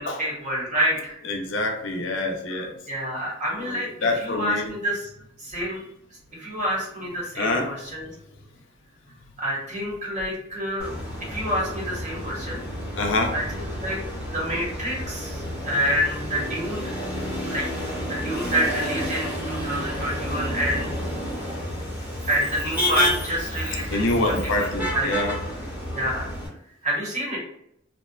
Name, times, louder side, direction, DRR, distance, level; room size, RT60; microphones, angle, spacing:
voice 1, 0.0-1.2 2.5-2.6 2.9-3.9 4.1-5.1 5.4-5.8 6.3-8.1 9.4-10.9 11.3-12.6 13.3-14.0 14.3-16.9 17.5-17.7 18.1-20.9 21.5-21.6 22.3-25.1 25.9-26.3 26.8-27.4, equal, 35° right, -5 dB, 1.0 m, -28 dB
voice 2, 1.3-2.7 3.6-4.7 7.4-7.7 13.0-13.3 23.9-25.4, left 2 dB, 60° left, 2 dB, 0.5 m, -26 dB
Motor vehicle (road), 10.8-26.5, equal, 5° right, 0.9 m, -30 dB
2.7 x 2.2 x 2.2 m, 0.73 s
head